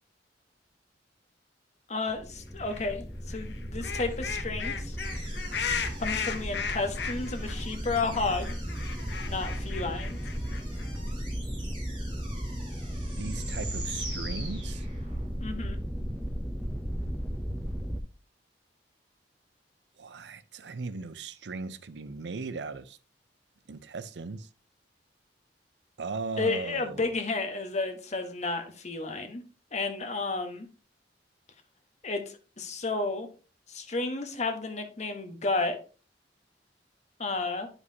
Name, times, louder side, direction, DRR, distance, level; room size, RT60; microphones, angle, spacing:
voice 1, 1.9-5.0 6.0-8.6 9.3-10.2 15.4-15.8 26.4-29.4 29.7-30.7 32.0-33.3 33.7-35.8 37.2-37.7, left 3 dB, 40° left, 1.1 m, -32 dB
sound 1, 2.1-18.0, equal, ahead, 0.7 m, -35 dB
sound 2, 2.7-2.9 3.3-7.6 7.9-8.0 8.1-11.0, left 6 dB, 70° left, 0.8 m, -36 dB
sound 3, 5.0-15.3, right 2 dB, 30° right, 3.0 m, -45 dB
voice 2, 13.2-14.9 20.0-23.0 23.7-24.5 26.0-27.0, right 4 dB, 75° right, 0.6 m, -38 dB
9.6 x 5.3 x 2.8 m
head